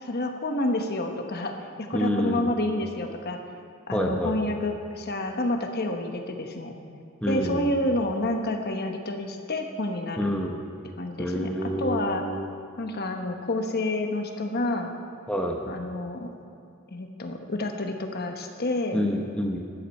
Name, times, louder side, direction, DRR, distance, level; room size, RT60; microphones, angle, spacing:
voice 1, 0.0-3.4 3.9-6.8 7.3-10.3 11.0-12.2 12.8-14.9 15.7-16.3 16.9-19.1, left 1 dB, 45° left, 4 dB, 1.1 m, -29 dB
voice 2, 1.9-2.5 3.9-4.5 7.2-7.7 10.2-10.6 11.2-12.4 15.3-15.7 18.9-19.6, equal, 5° left, 1 dB, 0.8 m, -28 dB
15.0 x 11.5 x 4.3 m, 2.5 s
head